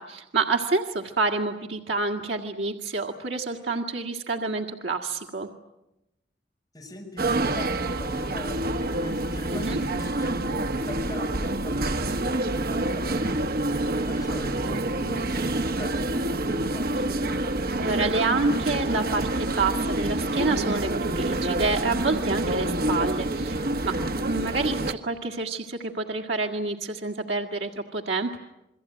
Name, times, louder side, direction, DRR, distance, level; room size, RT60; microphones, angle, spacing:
voice 1, 0.0-5.5 9.5-9.8 14.5-14.8 17.8-28.4, right 3 dB, 85° right, 2 dB, 2.0 m, -28 dB
voice 2, 6.7-16.9, left 1 dB, 20° left, 0 dB, 6.8 m, -41 dB
sound 1, 7.2-24.9, right 1 dB, 60° right, 1.4 m, -27 dB
29.0 x 22.5 x 9.1 m, 0.93 s
head